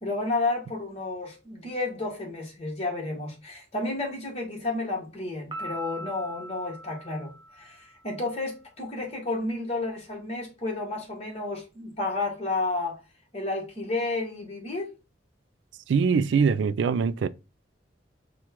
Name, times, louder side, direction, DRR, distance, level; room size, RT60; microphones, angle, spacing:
voice 1, 0.0-13.0 13.3-14.9, left 2 dB, 30° left, 1.4 m, -31 dB
Piano, 5.5-8.1, right 1 dB, 25° right, 1.0 m, -40 dB
voice 2, 15.9-17.3, right 5 dB, 70° right, 0.3 m, -23 dB
4.5 x 2.3 x 4.3 m
head